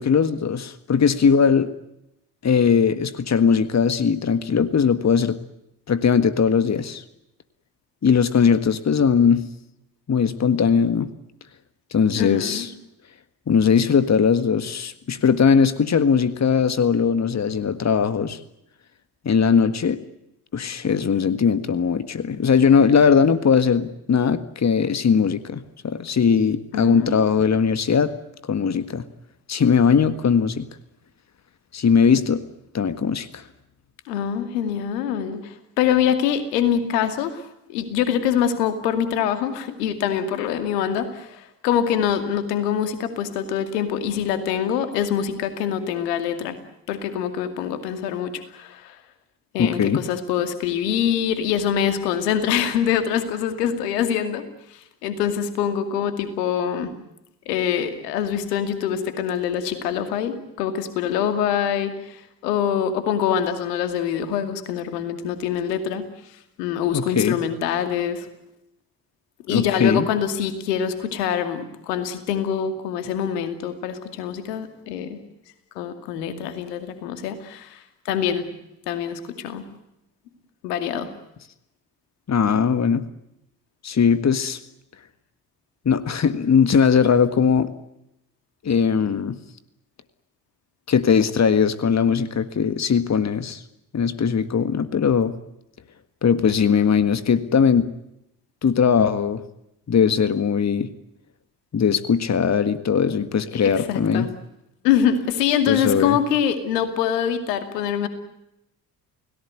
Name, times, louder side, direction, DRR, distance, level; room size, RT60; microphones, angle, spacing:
voice 1, 0.0-1.7 2.4-5.4 5.9-7.0 8.0-9.5 10.1-11.1 11.9-12.7 13.5-18.4 19.2-20.0 20.5-28.1 28.5-29.0 29.5-30.7 31.7-32.4 32.7-33.4 49.6-50.0 66.9-67.4 69.5-70.1 82.3-83.0 83.8-84.6 85.8-87.7 88.6-89.4 90.9-93.6 93.9-95.4 96.2-97.9 98.6-99.4 99.9-100.9 101.7-104.3 105.7-106.2, left 6 dB, 35° left, 12 dB, 1.7 m, -19 dB
voice 2, 12.2-12.7 26.7-27.2 34.1-46.6 46.9-49.0 49.5-56.9 57.5-66.1 66.6-68.3 69.5-75.2 75.8-78.5 78.9-79.6 80.6-81.1 103.5-104.3 104.8-108.1, left 8 dB, 80° left, 9 dB, 2.5 m, -24 dB
29.5 x 17.5 x 9.6 m, 0.84 s
hypercardioid pair, 50°, 47 cm